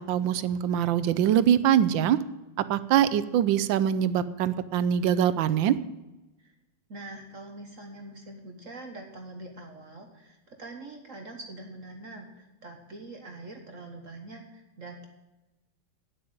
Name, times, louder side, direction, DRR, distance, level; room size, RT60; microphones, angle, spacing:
voice 1, 0.0-2.2 2.7-5.8, right 10 dB, 75° right, 15 dB, 1.3 m, -23 dB
voice 2, 6.9-15.1, right 2 dB, 45° right, 3 dB, 1.5 m, -44 dB
9.3 x 8.6 x 8.7 m, 1.0 s
omnidirectional pair, 2.2 m